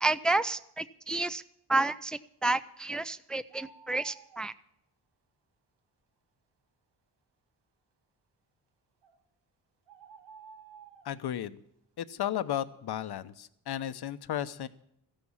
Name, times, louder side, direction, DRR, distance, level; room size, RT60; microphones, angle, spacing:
voice 1, 0.0-1.4 1.7-4.5, right 2 dB, ahead, 15 dB, 0.5 m, -30 dB
sound 1, 3.5-4.4 9.0-9.2 9.9-11.1, right 5 dB, 85° right, 1.8 m, -52 dB
voice 2, 11.0-11.6 12.0-14.7, left 11 dB, 70° left, 12 dB, 1.0 m, -34 dB
14.5 x 10.5 x 7.3 m, 0.74 s
cardioid pair, 95°, 41 cm